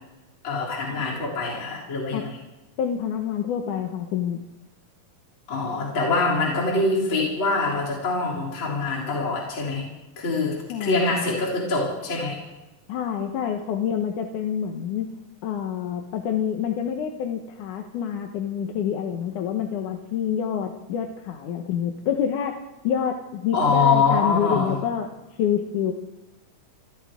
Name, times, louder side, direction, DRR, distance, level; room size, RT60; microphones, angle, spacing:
voice 1, 0.4-2.4 5.5-9.9 10.2-12.4 23.5-24.8, left 3 dB, 35° left, -5 dB, 4.0 m, -24 dB
voice 2, 2.8-4.4 10.7-11.1 12.9-15.1 15.4-22.6 22.8-25.1 25.4-25.9, left 8 dB, 70° left, 3 dB, 2.5 m, -27 dB
29.5 x 12.0 x 3.7 m, 1.1 s
omnidirectional pair, 3.9 m